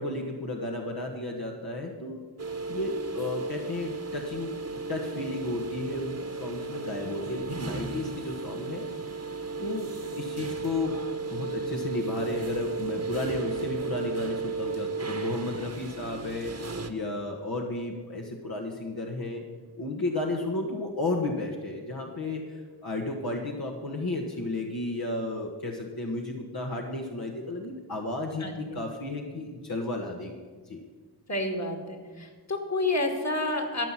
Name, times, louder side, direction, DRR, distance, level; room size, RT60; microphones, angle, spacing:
voice 1, 0.0-2.2 2.7-4.6 4.9-8.9 9.6-9.9 10.2-11.0 11.3-19.4 19.8-30.3 30.6-30.8, left 2 dB, 60° left, -1 dB, 1.6 m, -33 dB
sound 1, 2.4-16.9, right 4 dB, 40° right, 1.3 m, -34 dB
voice 2, 31.3-33.8, left 2 dB, 40° left, 3 dB, 2.4 m, -29 dB
14.0 x 6.0 x 9.8 m, 1.5 s
cardioid pair, 55°, 41 cm